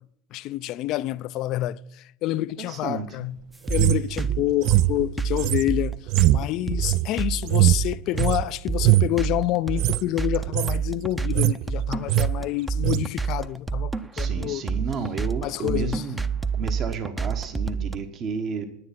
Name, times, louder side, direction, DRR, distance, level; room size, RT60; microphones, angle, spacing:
voice 1, 0.3-3.4 3.7-6.0 6.3-14.6 15.4-16.0, left 15 dB, 50° left, 0.4 m, -28 dB
voice 2, 2.6-3.1 4.2-4.3 4.6-4.8 14.1-16.3 16.5-18.7, right 5 dB, 40° right, 1.1 m, -32 dB
sound 1, 3.7-18.0, right 6 dB, 10° right, 0.6 m, -27 dB
sound 2, 3.7-8.4 8.8-9.2 9.7-10.0 10.3-10.8 11.1-11.7 11.9-12.3 12.8-13.0, right 17 dB, 55° right, 0.3 m, -22 dB
9.6 x 9.5 x 5.8 m
hypercardioid pair, 100°, 0 cm